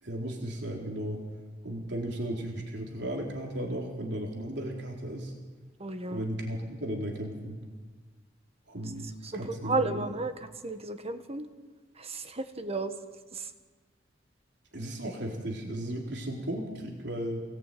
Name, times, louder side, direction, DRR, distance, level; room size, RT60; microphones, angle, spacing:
voice 1, 0.0-1.2 1.6-5.3 6.1-7.6 8.7-10.1 14.7-17.4, right 1 dB, 65° right, 0 dB, 4.0 m, -35 dB
voice 2, 5.8-6.2 9.2-10.3 10.6-11.5 12.0-12.9 13.3-13.5, right 3 dB, 35° right, 8 dB, 1.5 m, -33 dB
28.0 x 19.0 x 9.3 m, 1.4 s
head